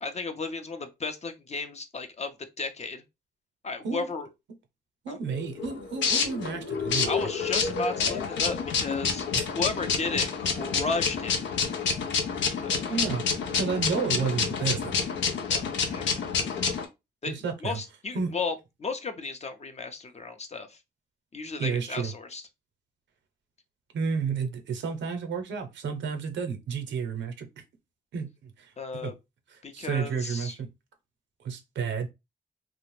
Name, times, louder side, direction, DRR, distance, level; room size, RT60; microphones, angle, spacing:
voice 1, 0.0-3.0 3.6-4.3 5.1-5.2 7.1-9.3 9.5-11.4 12.6-13.0 15.4-16.2 17.2-18.5 18.8-20.8 21.3-22.4 28.8-29.1 29.6-30.5, left 4 dB, 35° left, 0.6 m, -34 dB
voice 2, 5.0-7.3 9.3-9.5 12.9-13.2 13.5-14.9 17.3-17.8 18.1-18.3 21.6-22.1 23.9-27.5 28.1-29.1 29.7-30.7 31.4-32.1, right 5 dB, 80° right, 0.6 m, -31 dB
sound 1, 5.3-16.8, left 5 dB, 85° left, 0.5 m, -28 dB
2.4 x 2.0 x 3.1 m
cardioid pair, 55°, 19 cm